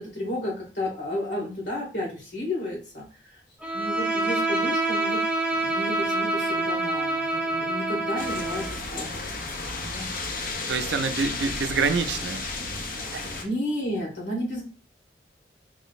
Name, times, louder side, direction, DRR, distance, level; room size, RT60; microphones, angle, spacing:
voice 1, 0.0-3.4 3.7-5.2 5.5-9.3 9.6-10.1 13.4-14.6, left 1 dB, 85° left, 2.1 m, -32 dB
Bowed string instrument, 3.6-8.8, right 2 dB, 10° right, 0.4 m, -26 dB
sound 1, 8.2-13.5, left 3 dB, 50° left, 0.7 m, -33 dB
voice 2, 10.7-12.4 13.1-13.3, right 5 dB, 85° right, 0.4 m, -26 dB
4.7 x 2.0 x 4.0 m
head